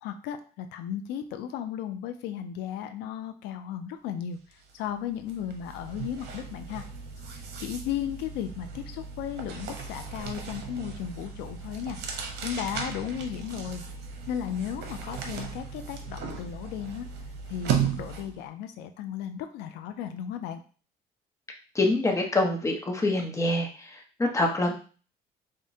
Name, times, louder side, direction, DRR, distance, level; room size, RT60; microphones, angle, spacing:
voice 1, 0.0-6.8 7.3-12.0 12.4-13.8 14.3-17.1 17.5-20.6, left 9 dB, 90° left, 8 dB, 0.4 m, -35 dB
sound 1, 4.5-4.7 5.0-18.4, right 7 dB, 80° right, 0.7 m, -36 dB
voice 2, 21.7-24.7, left 2 dB, 20° left, 2 dB, 0.9 m, -26 dB
5.0 x 2.2 x 2.7 m, 0.38 s
cardioid pair, 110°, 17 cm